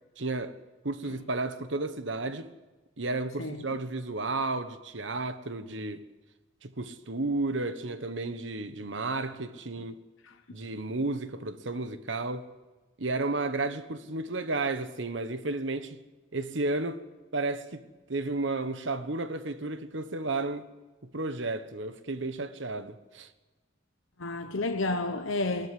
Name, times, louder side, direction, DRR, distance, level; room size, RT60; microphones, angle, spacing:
voice 1, 0.2-0.6 0.8-2.5 3.0-6.0 6.6-10.0 10.5-12.5 13.0-16.0 16.3-17.0 17.3-20.7 21.0-23.3, right 2 dB, 65° right, 1.3 m, -32 dB
voice 2, 24.2-25.7, left 2 dB, 90° left, 1.0 m, -31 dB
20.0 x 13.5 x 9.7 m
head